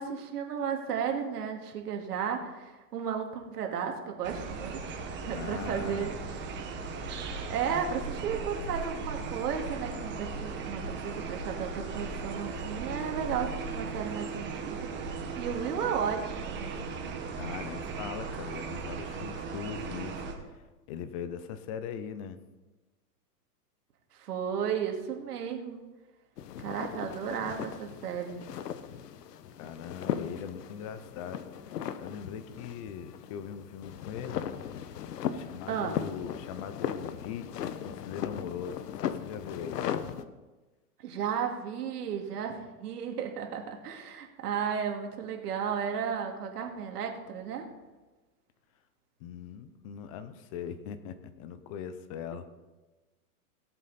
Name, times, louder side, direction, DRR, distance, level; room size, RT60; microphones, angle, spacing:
voice 1, 0.0-6.1 7.5-14.9 15.4-16.7 24.1-25.8 26.6-28.4 35.7-36.0 41.0-47.7, right 7 dB, 75° right, 3 dB, 2.3 m, -34 dB
sound 1, 4.2-20.3, right 4 dB, 25° right, 1.5 m, -37 dB
voice 2, 5.3-6.1 17.4-20.2 20.9-22.4 29.6-31.5 32.0-34.5 35.3-39.8 49.2-52.4, left 8 dB, 25° left, 13 dB, 0.4 m, -40 dB
sound 2, 26.4-40.2, left 9 dB, 85° left, 0.9 m, -38 dB
17.5 x 7.6 x 4.1 m, 1.2 s
hypercardioid pair, 140°, 47 cm